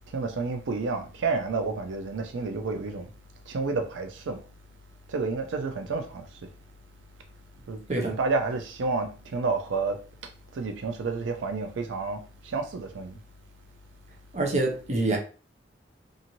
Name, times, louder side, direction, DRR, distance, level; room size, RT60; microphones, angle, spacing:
voice 1, 0.1-3.1 3.5-4.4 5.1-6.2 7.7-10.0 10.6-13.1, right 4 dB, 80° right, 0.4 m, -30 dB
voice 2, 14.3-15.2, right 2 dB, 35° right, 0.6 m, -26 dB
2.6 x 2.5 x 2.9 m
head